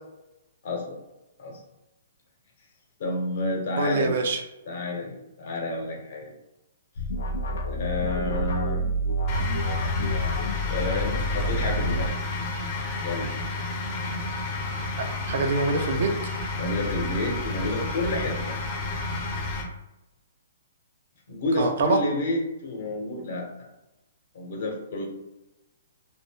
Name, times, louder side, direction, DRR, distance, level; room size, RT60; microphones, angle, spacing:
voice 1, 0.6-1.0 1.4-1.6 3.0-4.2 4.7-6.3 7.7-8.8 10.7-12.1 13.0-13.3 16.6-18.6 21.3-23.7 24.3-25.0, left 2 dB, 55° left, 0 dB, 1.0 m, -30 dB
voice 2, 3.8-4.4 15.0-16.1 21.6-22.0, right 3 dB, 55° right, 4 dB, 0.5 m, -25 dB
sound 1, 7.0-12.1, equal, 75° left, 0.5 m, -28 dB
sound 2, 9.3-19.6, left 3 dB, 25° left, 0.7 m, -31 dB
2.6 x 2.1 x 3.4 m, 0.95 s
hypercardioid pair, 155°, 0 cm